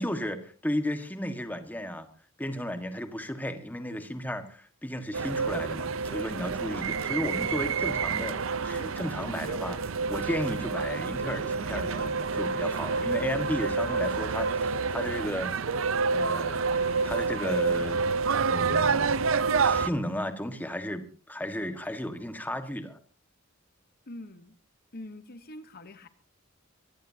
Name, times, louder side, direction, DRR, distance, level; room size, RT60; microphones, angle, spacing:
voice 1, 0.0-2.1 2.4-15.6 16.1-18.0 18.5-19.2 19.6-23.0, left 1 dB, 10° left, 1.6 m, -34 dB
sound 1, 5.1-19.9, right 4 dB, 70° right, 0.7 m, -28 dB
voice 2, 24.1-24.6 24.9-26.1, left 1 dB, 45° left, 1.1 m, -44 dB
23.5 x 18.5 x 2.8 m
head